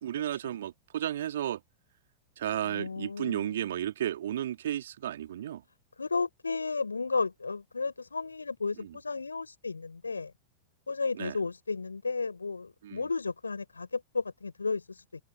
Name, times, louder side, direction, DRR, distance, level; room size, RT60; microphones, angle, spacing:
voice 1, 0.0-1.6 2.4-5.6 8.8-9.0 11.2-11.4 12.8-13.0, right 11 dB, 60° right, 3.0 m, -33 dB
voice 2, 2.6-3.6 6.0-10.3 10.9-15.0, left 4 dB, 80° left, 5.6 m, -33 dB
figure-of-eight pair, 90°, 0 cm